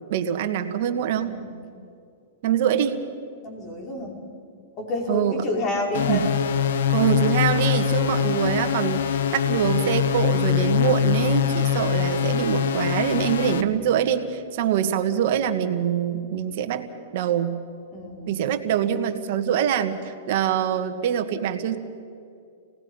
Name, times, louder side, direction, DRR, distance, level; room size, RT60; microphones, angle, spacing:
voice 1, 0.1-1.3 2.4-3.0 5.1-5.4 6.1-6.3 6.9-16.9 17.1-17.6 18.3-21.8, right 9 dB, 55° right, 6 dB, 1.8 m, -24 dB
voice 2, 3.4-4.2 4.8-6.3 15.0-15.1 17.9-18.4, left 1 dB, 35° left, 1 dB, 5.2 m, -30 dB
sound 1, 5.9-13.6, left 8 dB, 70° left, 1.0 m, -23 dB
28.5 x 19.0 x 5.7 m, 2.4 s
hypercardioid pair, 135°, 0 cm